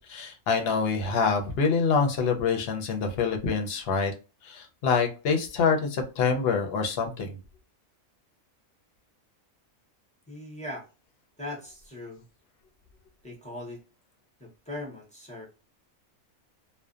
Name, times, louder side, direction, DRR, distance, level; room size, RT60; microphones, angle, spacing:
voice 1, 0.0-4.1 4.4-7.4, left 5 dB, 60° left, 4 dB, 0.7 m, -26 dB
voice 2, 10.3-10.9 11.4-12.2 13.2-13.8 14.4-15.5, left 1 dB, 10° left, -3 dB, 0.4 m, -39 dB
2.6 x 2.1 x 2.3 m, 0.33 s
omnidirectional pair, 1.4 m